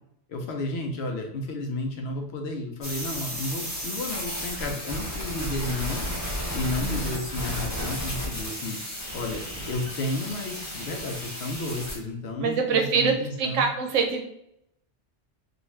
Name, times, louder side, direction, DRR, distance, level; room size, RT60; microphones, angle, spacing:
voice 1, 0.3-6.1 6.5-8.8 9.1-13.7, left 2 dB, 65° left, 2 dB, 0.8 m, -32 dB
sound 1, 2.8-12.0, equal, 15° left, 0.8 m, -33 dB
voice 2, 6.8-7.1 12.4-14.2, right 5 dB, 85° right, 3 dB, 1.0 m, -25 dB
2.5 x 2.4 x 3.0 m, 0.78 s
omnidirectional pair, 1.3 m